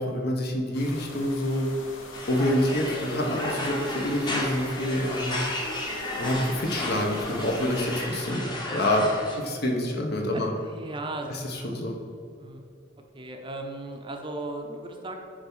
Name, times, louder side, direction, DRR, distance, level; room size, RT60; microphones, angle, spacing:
voice 1, 0.0-1.7 2.3-5.4 6.1-9.1 9.4-10.5 11.4-12.0, left 1 dB, 55° left, 1 dB, 1.1 m, -27 dB
sound 1, 0.7-8.1, left 2 dB, 80° left, 1.0 m, -44 dB
sound 2, 2.1-9.4, left 1 dB, 20° left, 1.1 m, -33 dB
voice 2, 10.2-11.7 12.4-12.6 13.1-15.2, right 2 dB, 25° right, 3 dB, 0.6 m, -37 dB
9.0 x 3.5 x 5.6 m, 2.4 s
head